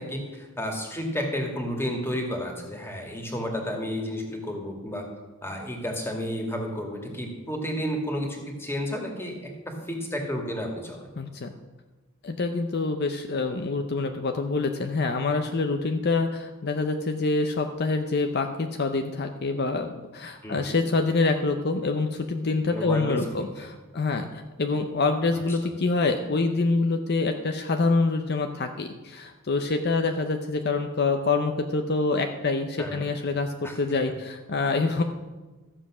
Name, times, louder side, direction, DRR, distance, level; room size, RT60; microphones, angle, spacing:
voice 1, 0.0-5.1 5.4-9.4 9.7-11.1 20.4-20.7 22.7-23.4 25.3-25.7 32.8-33.1 33.6-33.8, equal, 10° left, 2 dB, 2.0 m, -32 dB
voice 2, 11.2-11.5 12.2-35.0, left 3 dB, 50° left, 6 dB, 0.7 m, -26 dB
13.5 x 7.5 x 6.1 m, 1.2 s
head